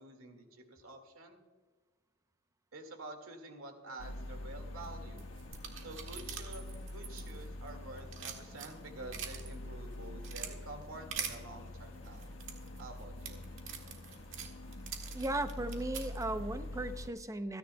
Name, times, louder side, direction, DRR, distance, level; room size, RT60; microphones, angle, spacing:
voice 1, 0.0-1.4 2.7-5.3 5.8-6.6 6.9-12.3 12.8-13.4, right 2 dB, 85° right, 5 dB, 2.1 m, -49 dB
sound 1, 4.0-17.1, left 1 dB, 70° left, 1.3 m, -45 dB
sound 2, 5.2-7.7 8.0-9.5 9.9-10.5 11.1-11.3 12.0-16.2, right 8 dB, 65° right, 1.9 m, -43 dB
voice 2, 15.1-17.6, right 1 dB, 15° right, 10 dB, 0.6 m, -36 dB
27.0 x 10.5 x 2.3 m, 1.4 s
head